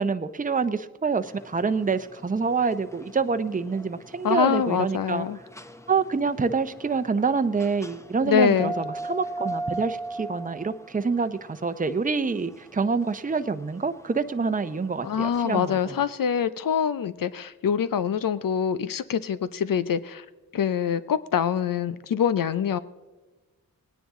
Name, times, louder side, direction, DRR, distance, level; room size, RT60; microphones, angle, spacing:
voice 1, 0.0-5.3 5.9-15.9, right 4 dB, 25° right, 10 dB, 0.7 m, -26 dB
sound 1, 1.2-16.1, right 2 dB, 10° left, 0.8 m, -40 dB
voice 2, 4.2-5.4 8.2-8.7 15.0-20.3 20.5-22.8, left 8 dB, 65° left, 14 dB, 0.6 m, -25 dB
18.5 x 9.9 x 3.7 m, 1.3 s
cardioid pair, 50°, 35 cm